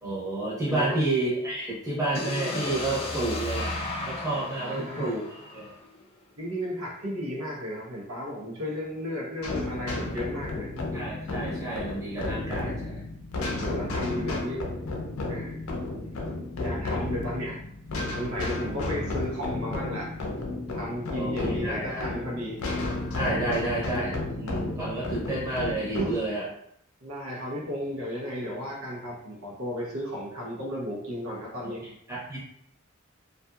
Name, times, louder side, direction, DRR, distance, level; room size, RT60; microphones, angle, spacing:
voice 1, 0.0-3.8 4.0-5.7 10.9-13.0 21.1-22.1 23.1-26.5 31.8-32.4, right 2 dB, 15° right, -7 dB, 0.9 m, -30 dB
voice 2, 0.7-1.1 4.6-5.2 6.4-10.7 13.6-14.6 15.3-15.6 16.6-17.6 18.1-20.1 20.7-22.6 26.0-26.2 27.0-31.9, equal, 75° right, -4 dB, 0.8 m, -34 dB
sound 1, 2.1-6.1, left 2 dB, 30° left, 0.4 m, -34 dB
sound 2, 9.4-26.1, left 2 dB, 85° left, 0.5 m, -32 dB
2.7 x 2.5 x 2.3 m, 0.73 s
head